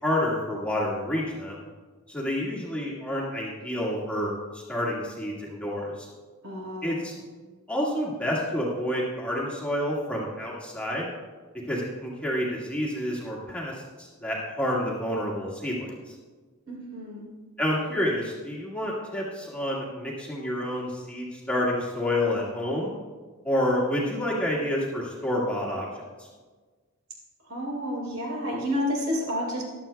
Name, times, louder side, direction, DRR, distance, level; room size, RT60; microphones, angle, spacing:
voice 1, 0.0-1.7 2.1-6.1 6.8-7.1 7.7-11.1 11.7-16.1 17.6-22.9 23.4-26.3, left 1 dB, 5° left, -5 dB, 1.8 m, -29 dB
voice 2, 6.4-7.1 16.7-17.3 27.5-29.6, equal, 70° right, -3 dB, 3.7 m, -30 dB
15.0 x 11.5 x 2.3 m, 1.4 s
head